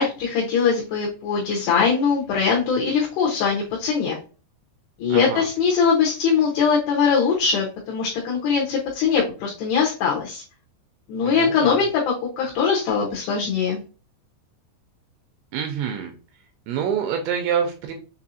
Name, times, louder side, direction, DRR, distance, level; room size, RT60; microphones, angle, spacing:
voice 1, 0.0-4.2 5.0-10.4 11.1-13.8, left 6 dB, 75° left, -3 dB, 2.7 m, -21 dB
voice 2, 5.1-5.5 11.2-11.8 15.5-16.1 16.7-17.9, right 8 dB, 85° right, 4 dB, 2.7 m, -26 dB
6.8 x 2.6 x 2.7 m, 0.35 s
omnidirectional pair, 5.3 m